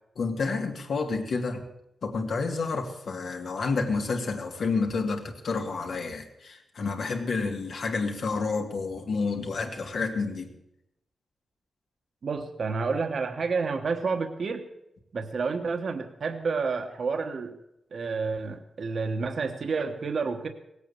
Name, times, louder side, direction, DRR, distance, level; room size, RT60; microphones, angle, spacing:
voice 1, 0.2-1.6 2.0-10.5, left 4 dB, 70° left, 3 dB, 2.2 m, -29 dB
voice 2, 12.2-14.6 15.1-17.6 17.9-20.5, right 4 dB, 60° right, 6 dB, 1.2 m, -29 dB
18.0 x 8.4 x 7.0 m, 0.83 s
wide cardioid pair, 105°, 0 cm